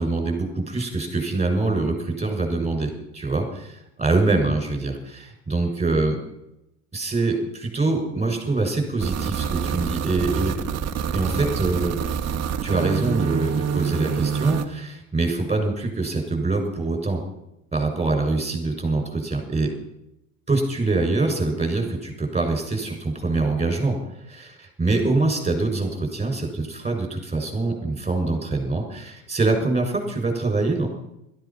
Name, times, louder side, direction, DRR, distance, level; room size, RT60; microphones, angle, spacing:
voice 1, 0.0-6.2 6.9-10.6 11.1-12.0 12.6-17.2 17.7-19.7 20.5-24.0 24.2-30.9, right 3 dB, 15° right, 4 dB, 6.6 m, -24 dB
sound 1, 9.0-14.6, right 7 dB, 40° right, 1.8 m, -26 dB
17.0 x 14.5 x 6.0 m, 0.85 s
hypercardioid pair, 85°, 41 cm